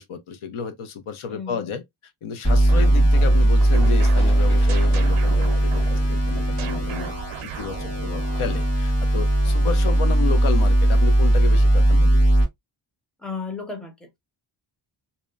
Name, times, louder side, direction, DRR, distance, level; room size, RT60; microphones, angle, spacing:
voice 1, 0.0-1.8 2.2-7.1 7.4-12.2, left 6 dB, 80° left, 0.7 m, -32 dB
voice 2, 1.3-1.7 9.4-9.9 13.2-14.2, left 4 dB, ahead, 0.5 m, -35 dB
sound 1, 2.4-12.4, right 1 dB, 30° left, 1.2 m, -18 dB
sound 2, 2.5-8.7, right 8 dB, 75° right, 0.6 m, -37 dB
sound 3, 2.9-8.5, equal, 50° left, 1.4 m, -45 dB
2.8 x 2.1 x 2.3 m
wide cardioid pair, 150°, 49 cm